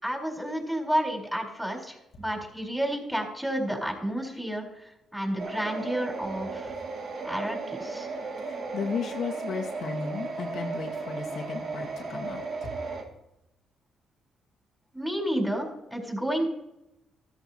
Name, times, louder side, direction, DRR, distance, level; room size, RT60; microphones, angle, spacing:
voice 1, 0.0-4.6 5.1-6.7 7.2-8.1 14.9-16.5, equal, 5° right, 4.1 m, -30 dB
sound 1, 5.4-13.0, right 4 dB, 60° right, 2.3 m, -35 dB
voice 2, 8.7-12.4, left 5 dB, 65° left, 2.0 m, -34 dB
14.0 x 14.0 x 2.9 m
cardioid pair, 90°, 0 cm